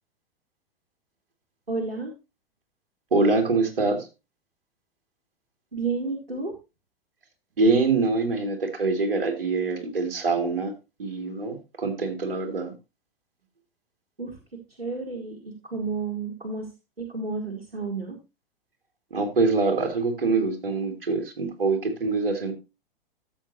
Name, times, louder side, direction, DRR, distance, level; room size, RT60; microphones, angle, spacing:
voice 1, 1.7-2.1 5.7-6.6 14.2-16.7 17.0-18.2, right 4 dB, 85° right, 2 dB, 1.9 m, -31 dB
voice 2, 3.1-4.1 7.6-10.7 11.0-12.7 19.1-22.5, right 3 dB, 65° right, 4 dB, 2.7 m, -24 dB
13.5 x 7.4 x 2.8 m, 0.27 s
figure-of-eight pair, 100°, 29 cm